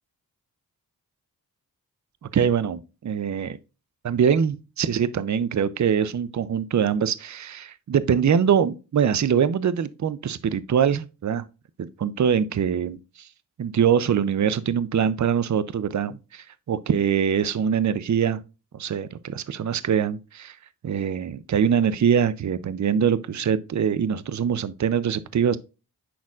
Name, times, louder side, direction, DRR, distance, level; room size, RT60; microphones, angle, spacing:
voice 1, 2.3-3.6 4.0-11.4 11.8-13.0 13.6-18.4 18.7-20.5 20.8-25.6, right 7 dB, 45° right, 0.6 m, -23 dB
10.0 x 4.2 x 2.4 m
cardioid pair, 50°, 40 cm